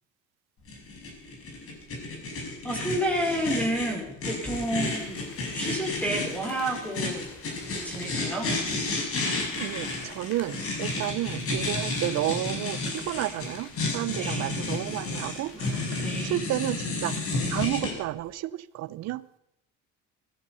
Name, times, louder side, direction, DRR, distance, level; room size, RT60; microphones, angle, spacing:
sound 1, 0.7-17.9, left 3 dB, 45° left, 5.8 m, -31 dB
voice 1, 2.6-5.2 5.5-7.2 7.8-8.5 14.1-14.5 15.5-16.4, right 1 dB, 5° left, 1 dB, 5.0 m, -30 dB
sound 2, 4.5-16.2, left 4 dB, 75° left, 5.0 m, -50 dB
voice 2, 9.6-19.4, right 15 dB, 60° right, 18 dB, 0.7 m, -32 dB
17.0 x 13.5 x 5.5 m, 0.83 s
cardioid pair, 125°, 30 cm